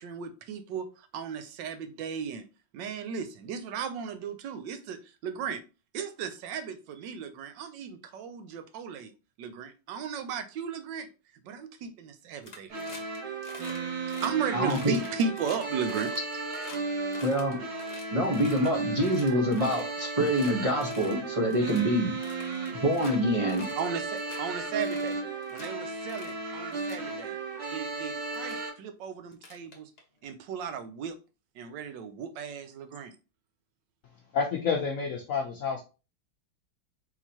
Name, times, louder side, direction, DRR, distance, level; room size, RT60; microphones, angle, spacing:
voice 1, 0.0-2.4 2.7-5.6 5.9-9.1 9.4-11.1 11.4-13.0 14.2-16.1 23.7-25.2 25.5-27.4 27.7-29.9 30.2-31.2 31.5-33.1, right 6 dB, 70° right, 1.2 m, -35 dB
sound 1, 12.4-13.2 13.4-13.8 14.1-14.3 14.7-16.8 17.1-18.7 19.0-19.9 20.2-20.5 20.8-21.2 21.5-21.8 22.2-23.2 23.5-23.9 24.2-24.4 24.8-25.7 26.1-26.4 26.7-27.1 27.9-28.0 28.3-28.6 29.3-30.2, left 3 dB, 40° left, 1.0 m, -47 dB
sound 2, 12.7-28.7, right 3 dB, 85° right, 2.3 m, -35 dB
voice 2, 14.5-15.0 17.2-17.6 18.1-22.1 22.8-23.7, equal, 50° right, 0.4 m, -26 dB
voice 3, 34.3-35.8, left 5 dB, 70° left, 0.8 m, -29 dB
4.5 x 3.8 x 2.8 m
omnidirectional pair, 2.2 m